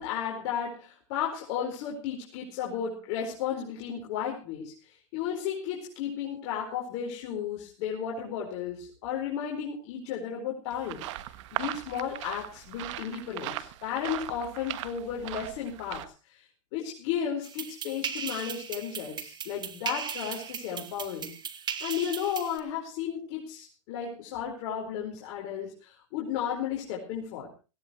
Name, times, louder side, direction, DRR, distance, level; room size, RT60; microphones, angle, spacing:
voice 1, 0.0-4.7 5.1-11.0 11.5-16.4 16.7-21.3 21.8-27.5, left 8 dB, 60° left, -2 dB, 4.7 m, -34 dB
sound 1, 10.7-16.1, right 15 dB, 70° right, 1.5 m, -38 dB
sound 2, 17.4-22.6, right 7 dB, 25° right, 1.8 m, -37 dB
18.5 x 17.0 x 3.1 m, 0.32 s
supercardioid pair, 120°, 16 cm